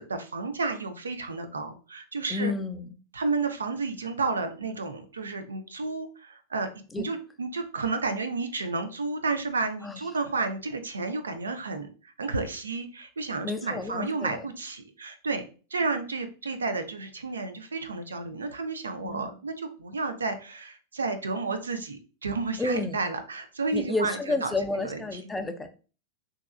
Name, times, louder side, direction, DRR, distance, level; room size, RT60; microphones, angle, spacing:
voice 1, 0.0-2.5 3.1-15.4 15.7-24.5 24.8-25.2, right 3 dB, 75° right, 8 dB, 0.4 m, -31 dB
voice 2, 2.3-2.9 6.9-7.1 9.8-10.0 13.4-14.4 19.0-19.3 22.6-23.0 23.7-25.7, left 3 dB, 10° left, 7 dB, 0.3 m, -30 dB
2.8 x 2.3 x 2.3 m, 0.36 s
figure-of-eight pair, 90°, 0 cm